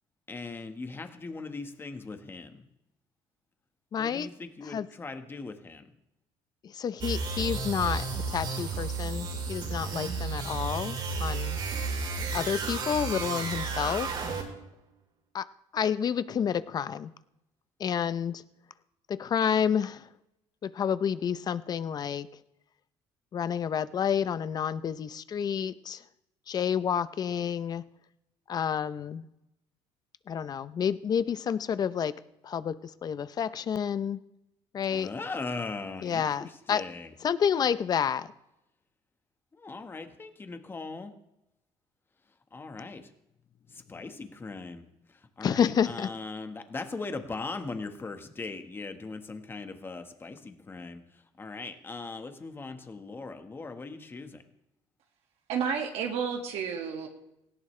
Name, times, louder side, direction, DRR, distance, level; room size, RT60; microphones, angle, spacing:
voice 1, 0.3-2.7 4.0-5.8 34.9-37.1 39.6-41.1 42.5-43.1 43.7-44.8 45.4-51.0 51.4-54.4, left 3 dB, 20° left, 7 dB, 1.6 m, -39 dB
voice 2, 3.9-4.3 4.6-4.9 6.6-11.6 12.3-14.1 15.3-15.4 15.7-17.1 17.8-18.4 19.1-20.1 20.6-22.3 23.3-26.0 26.5-27.8 28.5-29.2 30.3-32.1 32.4-34.2 34.7-35.1 36.0-36.8 37.2-38.3 45.4-46.1, left 8 dB, 40° left, 14 dB, 0.7 m, -29 dB
sound 1, 7.0-14.7, right 4 dB, 50° right, 4.4 m, -32 dB
voice 3, 55.5-57.1, right 6 dB, 75° right, 2 dB, 2.1 m, -31 dB
18.5 x 17.0 x 3.4 m, 0.86 s
cardioid pair, 130°, 11 cm